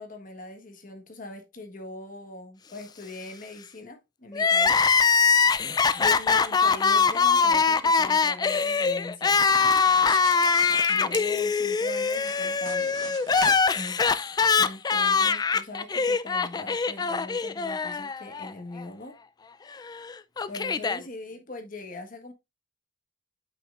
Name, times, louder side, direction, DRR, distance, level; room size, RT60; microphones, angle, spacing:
voice 1, 0.0-4.9 5.3-9.4 10.9-13.2 14.6-19.2 20.5-22.3, left 2 dB, 45° left, 1.4 m, -41 dB
Crying sobbing, 4.3-18.5 18.8-18.9 19.9-21.0, left 5 dB, 20° left, 0.3 m, -23 dB
sound 1, 8.3-12.4, right 10 dB, 65° right, 1.4 m, -45 dB
sound 2, 9.6-11.0 12.2-13.9, right 6 dB, 90° right, 1.0 m, -41 dB
8.4 x 6.1 x 2.4 m
head